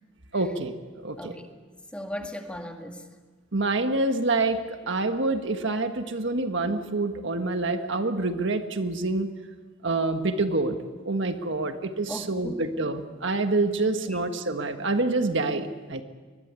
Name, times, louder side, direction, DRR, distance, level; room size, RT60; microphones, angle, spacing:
voice 1, 0.3-0.7 1.0-1.3 3.5-9.3 9.8-10.8 11.0-16.0, right 2 dB, 60° right, 7 dB, 1.6 m, -27 dB
voice 2, 1.2-1.5 1.9-3.1 12.1-12.6 14.0-14.2, equal, 5° left, 4 dB, 2.0 m, -37 dB
24.0 x 21.5 x 8.3 m, 1.3 s
head